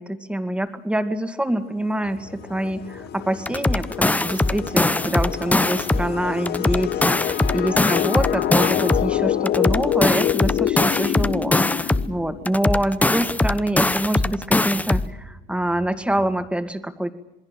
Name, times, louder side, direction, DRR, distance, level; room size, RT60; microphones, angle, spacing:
voice 1, 0.0-17.1, right 1 dB, 5° right, 9 dB, 2.2 m, -25 dB
sound 1, 2.0-16.5, right 3 dB, 75° right, 4.1 m, -48 dB
sound 2, 2.1-12.6, left 12 dB, 70° left, 1.0 m, -27 dB
sound 3, 3.5-6.1 6.5-9.1 9.5-12.1 12.5-15.1, left 2 dB, 10° left, 0.8 m, -21 dB
27.5 x 21.0 x 7.6 m, 0.94 s
cardioid pair, 110°, 17 cm